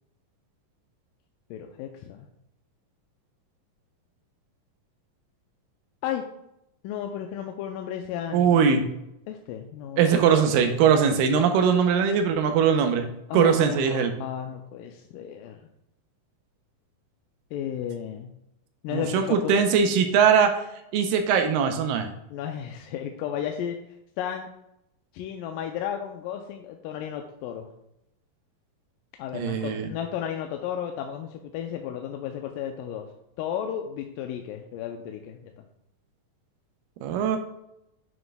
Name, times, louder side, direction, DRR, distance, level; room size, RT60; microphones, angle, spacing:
voice 1, 1.5-2.3 6.0-6.2 6.8-8.7 9.3-10.5 13.3-15.6 17.5-18.3 18.8-19.6 22.3-23.8 24.2-24.5 25.1-27.7 29.2-33.1 33.4-35.5, left 9 dB, 80° left, 4 dB, 2.1 m, -33 dB
voice 2, 8.3-8.8 10.0-13.1 13.3-14.1 18.9-20.6 20.9-22.1 29.3-29.9 37.0-37.4, right 7 dB, 85° right, 6 dB, 2.3 m, -21 dB
8.9 x 6.3 x 2.2 m, 0.83 s
omnidirectional pair, 4.0 m